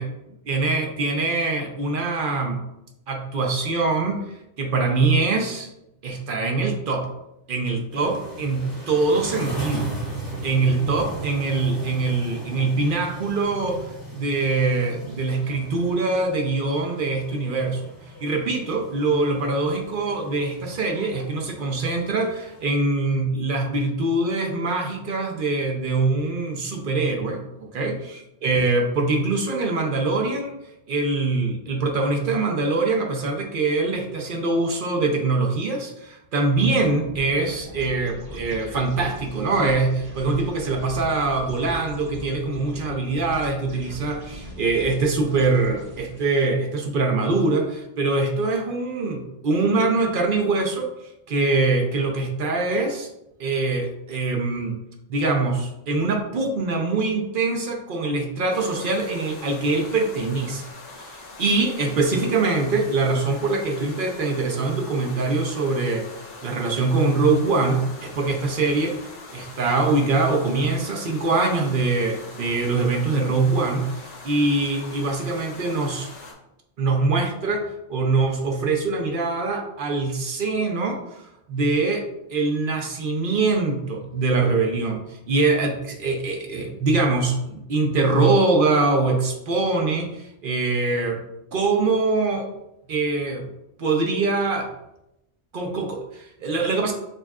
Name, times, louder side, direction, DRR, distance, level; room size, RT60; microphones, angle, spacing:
voice 1, 0.5-2.6 3.1-5.7 6.0-7.1 7.5-9.9 10.4-17.8 18.2-27.4 27.7-30.5 30.9-50.9 51.3-53.1 53.4-54.7 55.1-60.7 61.0-66.1 66.4-76.1 76.8-81.2 81.5-91.2 91.5-92.5 92.9-93.5 93.8-94.7 95.5-96.9, right 3 dB, 55° right, 2 dB, 0.7 m, -23 dB
sound 1, 7.9-22.7, right 1 dB, 20° left, 1.2 m, -37 dB
sound 2, 37.0-46.5, equal, 30° right, 1.1 m, -40 dB
sound 3, 58.5-76.3, left 2 dB, 75° left, 1.2 m, -42 dB
6.7 x 2.4 x 2.3 m, 0.86 s
omnidirectional pair, 1.2 m